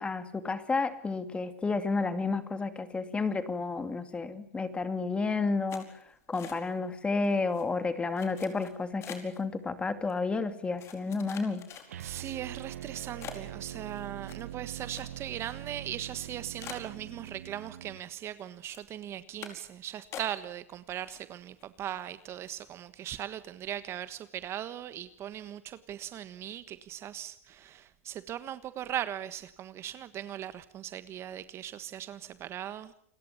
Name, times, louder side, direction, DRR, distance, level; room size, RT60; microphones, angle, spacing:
voice 1, 0.0-5.9 6.3-11.6, left 4 dB, 15° left, 2.5 m, -31 dB
sound 1, 5.7-6.9 7.2-7.6 8.2-9.4 10.1-10.2 10.8-12.2 12.7-12.8 13.2-15.4 15.7-15.8 16.2-16.3 16.6-17.7 18.0-18.4 18.7-18.9 19.4-19.7 20.1-20.7 21.0-21.6 22.0-22.1 22.4-22.7, left 9 dB, 35° left, 4.8 m, -46 dB
sound 2, 11.9-18.1, right 12 dB, 80° right, 1.4 m, -43 dB
voice 2, 12.0-32.9, right 11 dB, 35° right, 1.4 m, -39 dB
29.0 x 21.5 x 7.2 m
hypercardioid pair, 120°, 8 cm